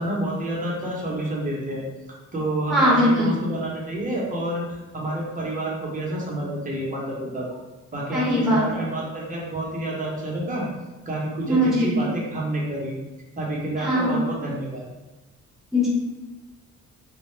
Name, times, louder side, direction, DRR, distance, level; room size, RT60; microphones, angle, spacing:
voice 1, 0.0-1.8 2.3-7.5 7.9-10.7 11.1-12.9 13.4-14.8, right 1 dB, 25° right, -4 dB, 0.8 m, -29 dB
voice 2, 2.7-3.3 8.1-8.6 11.5-12.0 13.8-14.1 15.7-15.9, equal, ahead, -7 dB, 0.9 m, -20 dB
2.2 x 2.0 x 3.1 m, 1.1 s
cardioid pair, 90°, 30 cm